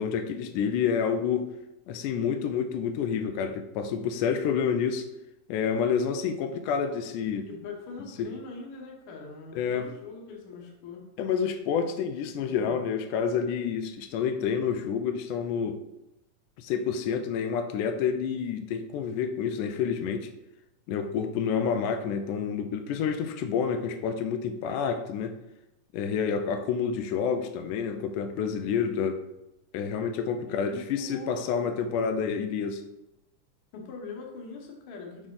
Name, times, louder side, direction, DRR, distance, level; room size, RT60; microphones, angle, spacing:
voice 1, 0.0-1.5 1.9-5.1 5.5-7.5 8.2-8.3 9.6-9.9 11.2-15.8 16.6-20.3 20.9-25.4 25.9-29.2 29.7-32.8, left 7 dB, 90° left, 7 dB, 2.1 m, -28 dB
voice 2, 7.4-11.0 12.4-12.8 30.5-31.7 33.7-35.3, left 4 dB, 60° left, 0 dB, 1.6 m, -42 dB
6.2 x 5.0 x 3.8 m, 0.90 s
omnidirectional pair, 3.6 m